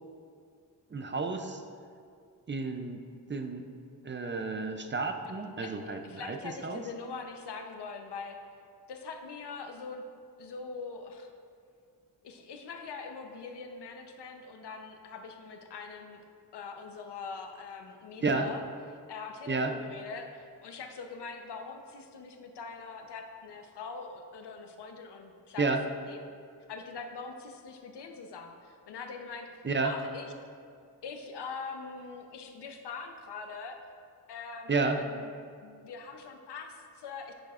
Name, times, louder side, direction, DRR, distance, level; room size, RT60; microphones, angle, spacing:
voice 1, 0.9-1.6 2.5-3.0 3.3-3.7 4.0-6.8 18.2-18.5 19.5-19.7 25.6-25.8 29.6-29.9 34.7-35.0, right 3 dB, 30° right, 6 dB, 0.4 m, -31 dB
voice 2, 6.0-8.4 8.9-10.0 10.4-11.3 12.2-16.2 16.5-18.6 19.1-25.7 26.1-26.2 26.7-30.3 31.0-33.8 34.3-35.3 35.6-37.3, left 4 dB, 90° left, 5 dB, 0.8 m, -43 dB
10.0 x 8.9 x 2.4 m, 2.4 s
wide cardioid pair, 160°, 39 cm